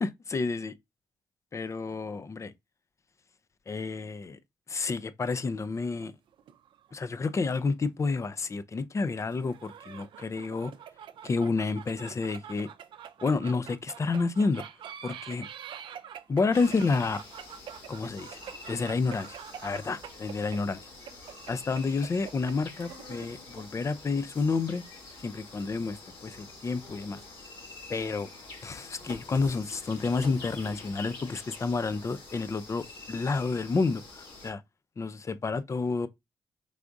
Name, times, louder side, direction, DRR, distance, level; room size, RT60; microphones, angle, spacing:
voice 1, 0.0-0.7 1.5-2.5 3.7-4.4 4.7-6.1 6.9-10.7 11.2-12.7 13.2-14.6 15.0-15.5 16.3-17.2 17.9-18.4 18.7-19.4 19.6-20.8 21.5-24.8 25.2-27.2 27.9-28.3 28.6-34.6 35.0-36.1, left 4 dB, 35° left, 0.5 m, -30 dB
sound 1, 5.8-7.3 7.6-7.7 9.3-23.6, right 9 dB, 75° right, 0.5 m, -46 dB
sound 2, 16.5-34.5, left 3 dB, 75° left, 2.1 m, -47 dB
4.9 x 3.4 x 2.6 m
supercardioid pair, 60°, 9 cm